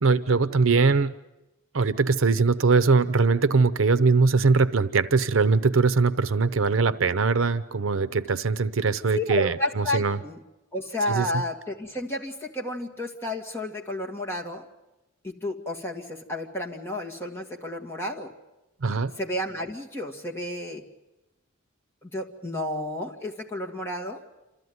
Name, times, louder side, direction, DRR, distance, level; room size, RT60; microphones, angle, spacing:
voice 1, 0.0-1.1 1.7-10.2 11.1-11.3 18.8-19.1, right 4 dB, 75° right, 15 dB, 0.7 m, -21 dB
voice 2, 9.1-10.4 10.7-14.7 15.2-18.3 19.2-20.8 22.0-24.2, left 1 dB, 10° left, -1 dB, 2.0 m, -31 dB
27.0 x 14.0 x 9.6 m, 1.0 s
head